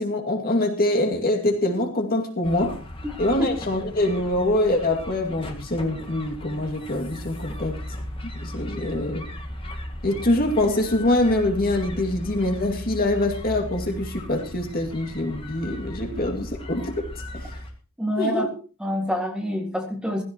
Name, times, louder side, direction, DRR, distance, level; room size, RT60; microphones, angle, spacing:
voice 1, 0.0-2.8 3.2-7.8 8.3-9.3 10.0-17.0 17.3-17.5 18.2-18.5, left 1 dB, 45° left, 2 dB, 2.4 m, -24 dB
sound 1, 2.4-17.7, left 1 dB, 25° left, 1.9 m, -37 dB
voice 2, 18.0-18.5 18.8-20.2, equal, 5° right, 2 dB, 2.1 m, -26 dB
16.0 x 15.5 x 3.0 m, 0.35 s
head